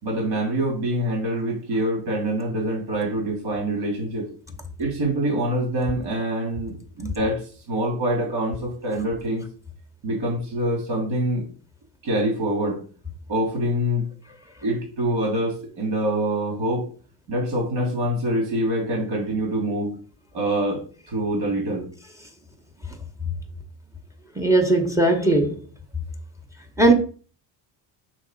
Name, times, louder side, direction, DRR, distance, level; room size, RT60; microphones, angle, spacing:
voice 1, 0.0-4.3 4.8-7.4 7.7-9.4 10.0-11.4 12.0-12.8 13.3-14.1 14.6-16.8 17.3-19.9 20.3-20.8 21.1-21.8, right 1 dB, 80° right, 2.8 m, -25 dB
voice 2, 24.4-25.5 26.8-26.9, right 2 dB, 5° right, 0.8 m, -18 dB
6.4 x 3.5 x 5.0 m
cardioid pair, 150°, 48 cm